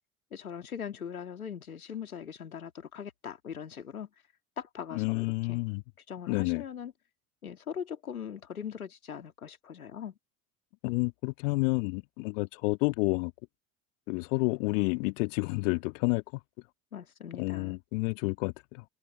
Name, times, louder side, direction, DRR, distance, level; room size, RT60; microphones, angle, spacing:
voice 1, 0.3-4.1 4.6-5.6 6.1-6.9 7.4-10.2 16.9-17.8, left 8 dB, 85° left, 2.4 m, -40 dB
voice 2, 4.9-5.8 6.3-6.6 10.8-13.3 14.1-16.4 17.3-18.8, left 28 dB, 65° left, 2.2 m, -30 dB
figure-of-eight pair, 70°, 42 cm